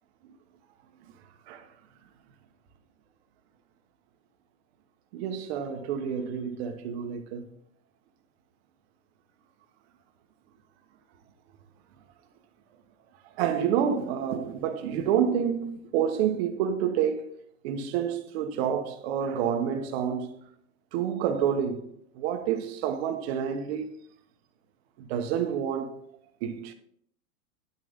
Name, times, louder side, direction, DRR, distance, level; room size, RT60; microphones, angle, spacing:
voice 1, 5.1-7.5 13.4-17.3 17.6-20.3 20.9-23.9 25.0-26.0 26.4-26.7, right 8 dB, 45° right, 1.3 m, -28 dB
10.5 x 6.3 x 3.6 m
supercardioid pair, 155°, 43 cm